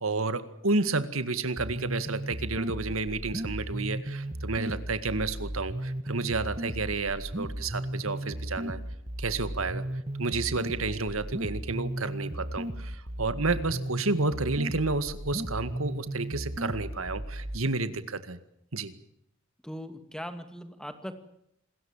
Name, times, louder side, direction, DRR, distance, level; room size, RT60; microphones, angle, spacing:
voice 1, 0.0-8.8 9.2-9.8 10.2-18.4 18.7-18.9, right 3 dB, 85° right, 12 dB, 2.0 m, -30 dB
sound 1, 1.6-17.6, right 1 dB, 30° right, 1.3 m, -35 dB
voice 2, 19.6-21.1, equal, 5° left, 9 dB, 2.3 m, -39 dB
27.5 x 21.0 x 7.4 m, 0.75 s
head